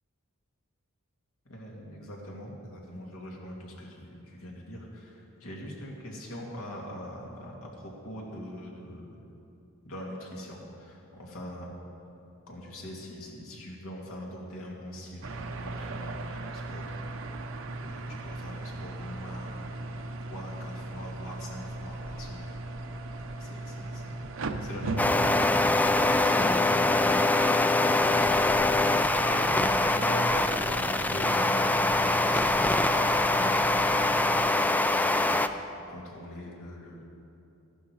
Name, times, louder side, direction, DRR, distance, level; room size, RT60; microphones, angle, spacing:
voice 1, 1.4-9.2 9.8-11.7 12.5-17.4 17.8-19.7 20.3-22.6 23.2-24.2 24.6-37.0, equal, 80° left, -2 dB, 2.7 m, -42 dB
sound 1, 15.2-34.5, right 2 dB, 65° right, 0.8 m, -38 dB
sound 2, 25.0-35.5, left 2 dB, 10° left, 0.3 m, -24 dB
15.0 x 12.0 x 4.8 m, 2.9 s
head